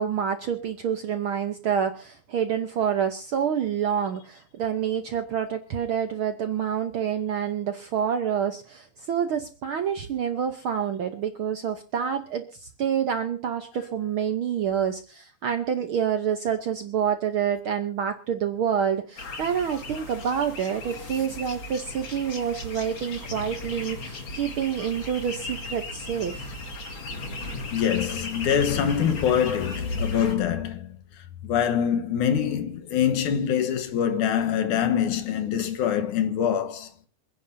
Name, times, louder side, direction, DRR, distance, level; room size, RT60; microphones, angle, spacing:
voice 1, 0.0-12.4 12.8-26.5, right 8 dB, 70° right, 1.3 m, -27 dB
sound 1, 19.2-30.4, left 2 dB, 45° left, 2.6 m, -37 dB
voice 2, 27.7-30.9 31.4-36.9, left 8 dB, 85° left, 2.7 m, -24 dB
27.0 x 10.0 x 2.7 m
omnidirectional pair, 3.4 m